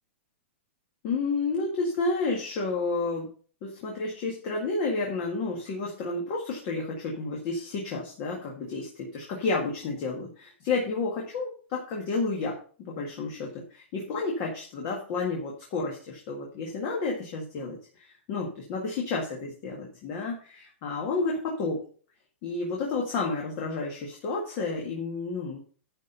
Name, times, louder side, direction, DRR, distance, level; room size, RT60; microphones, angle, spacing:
voice 1, 1.0-3.3 3.6-12.6 12.9-21.8 22.4-25.6, left 3 dB, 30° left, -1 dB, 1.9 m, -31 dB
11.5 x 4.5 x 6.8 m, 0.41 s
supercardioid pair, 180°, 7 cm